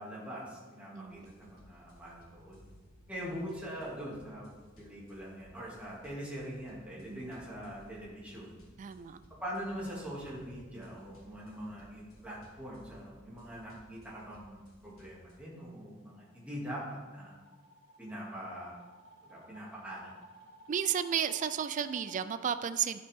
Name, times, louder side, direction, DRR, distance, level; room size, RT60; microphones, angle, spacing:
voice 1, 0.0-2.6 3.1-4.5 4.8-8.5 9.4-17.3 18.0-18.7 19.3-20.1, equal, 5° right, -7 dB, 2.5 m, -43 dB
voice 2, 0.9-1.3 7.1-7.3 8.8-9.2 20.7-23.0, right 8 dB, 40° right, 12 dB, 0.3 m, -33 dB
sound 1, 1.0-15.4, equal, 85° left, 1.8 m, -59 dB
sound 2, 16.0-22.2, equal, 80° right, 1.6 m, -56 dB
11.5 x 5.9 x 3.6 m, 1.3 s
head